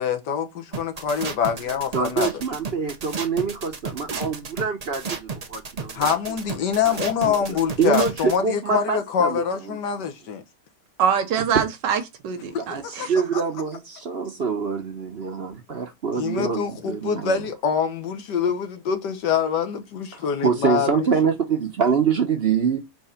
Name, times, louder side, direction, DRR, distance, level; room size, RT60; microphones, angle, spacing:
voice 1, 0.0-2.3 5.9-10.4 12.7-13.1 13.3-13.4 16.2-21.1, left 7 dB, 75° left, 1.6 m, -25 dB
sound 1, 0.7-8.4, right 5 dB, 65° right, 0.3 m, -32 dB
voice 2, 1.9-6.0 6.8-7.0 7.2-9.8 12.7-17.4 20.1-22.8, right 6 dB, 45° right, 0.9 m, -25 dB
voice 3, 11.0-13.1, right 7 dB, 80° right, 1.6 m, -24 dB
4.6 x 3.8 x 5.6 m
omnidirectional pair, 1.9 m